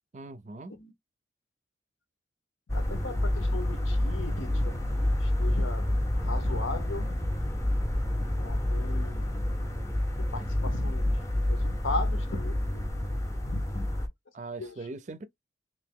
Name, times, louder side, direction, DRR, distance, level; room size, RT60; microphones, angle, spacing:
voice 1, 0.1-0.7 14.3-15.2, right 3 dB, 40° right, 0.4 m, -40 dB
voice 2, 2.7-4.8 5.2-5.9 6.2-7.1 8.4-9.3 10.2-11.2 11.5-13.0 13.5-13.9 14.6-14.8, left 3 dB, 90° left, 0.8 m, -38 dB
sound 1, 2.7-14.1, left 1 dB, 15° left, 0.6 m, -28 dB
2.9 x 2.5 x 3.6 m
head